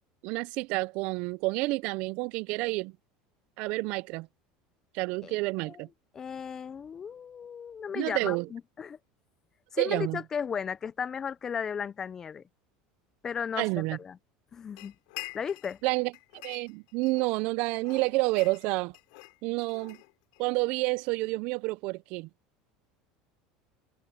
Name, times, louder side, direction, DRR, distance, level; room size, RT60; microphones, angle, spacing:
voice 1, 0.2-2.9 3.6-4.3 4.9-5.9 7.9-8.5 9.8-10.2 13.6-14.0 15.8-16.1 16.4-18.9 19.4-20.0 20.4-22.3, right 23 dB, 55° right, 0.4 m, -29 dB
voice 2, 6.1-9.0 9.7-12.4 13.2-14.2 14.5-14.9 15.3-15.8, left 7 dB, 20° left, 0.3 m, -35 dB
sound 1, 14.8-15.8 16.1-17.4 17.8-20.5, left 31 dB, 70° left, 4.0 m, -46 dB
cardioid pair, 160°, 2 cm